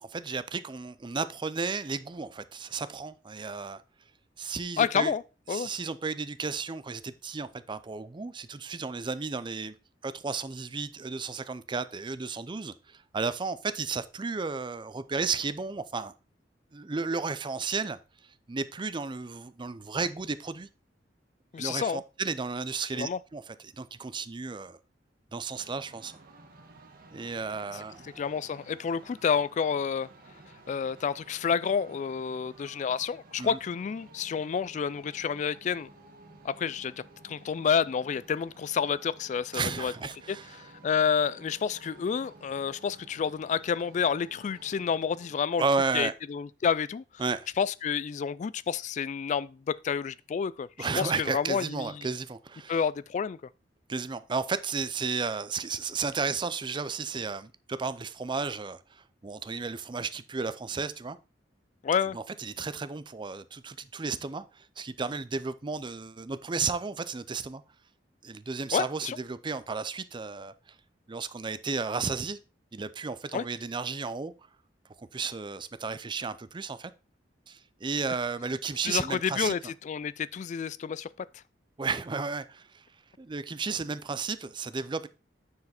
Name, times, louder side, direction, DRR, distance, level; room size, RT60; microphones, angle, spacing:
voice 1, 0.1-3.8 4.4-5.1 5.5-9.7 10.0-16.1 16.7-18.0 18.5-20.7 21.6-24.8 25.3-26.1 27.1-28.0 33.4-33.6 39.5-40.5 45.6-46.1 47.2-47.5 50.8-52.8 53.9-61.2 62.1-67.6 68.2-70.5 71.1-72.4 72.7-74.3 75.0-76.9 77.5-79.5 81.8-82.8 83.2-85.1, right 4 dB, 25° right, 0.5 m, -33 dB
voice 2, 4.8-5.2 5.5-5.7 21.5-22.0 22.9-23.2 28.2-30.1 30.7-35.9 36.4-39.9 40.3-45.6 45.9-47.0 47.6-52.1 52.7-53.4 61.8-62.2 68.7-69.2 73.3-73.4 78.8-81.3, left 6 dB, 40° left, 0.3 m, -29 dB
sound 1, 25.5-45.4, right 2 dB, 55° right, 1.4 m, -54 dB
9.5 x 4.8 x 4.2 m
head